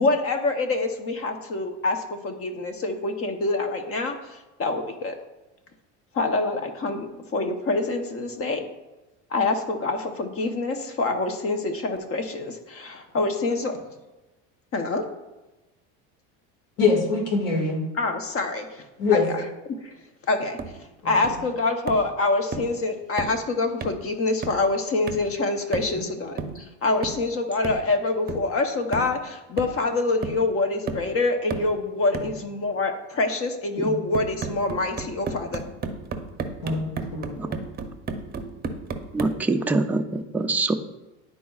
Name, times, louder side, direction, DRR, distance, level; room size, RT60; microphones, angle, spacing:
voice 1, 0.0-5.2 6.1-8.6 9.3-13.8 14.7-15.0 18.0-18.8 19.1-19.3 19.8-19.9 20.3-35.6, left 3 dB, 40° left, 6 dB, 0.9 m, -26 dB
voice 2, 16.8-17.8 19.0-19.3 21.0-21.1 25.9-26.0 32.1-32.3 33.8-33.9 36.6-37.5, left 4 dB, 65° left, 1 dB, 2.1 m, -24 dB
sound 1, 20.6-20.8 21.2-21.5 21.9-22.1 22.5-22.8 23.2-23.4 23.8-24.1 24.4-24.7 25.1-25.3 25.7-26.0 26.4-26.6 27.0-27.3 27.6-27.9 28.3-28.5 28.9-29.2 29.6-29.9 30.2-30.5 30.9-31.1 31.5-31.8 32.1-32.4 34.1-39.4, right 4 dB, 25° right, 0.7 m, -34 dB
voice 3, 39.1-40.7, right 3 dB, 5° right, 5 dB, 0.3 m, -24 dB
10.5 x 4.2 x 2.4 m, 1.1 s
supercardioid pair, 100°, 35 cm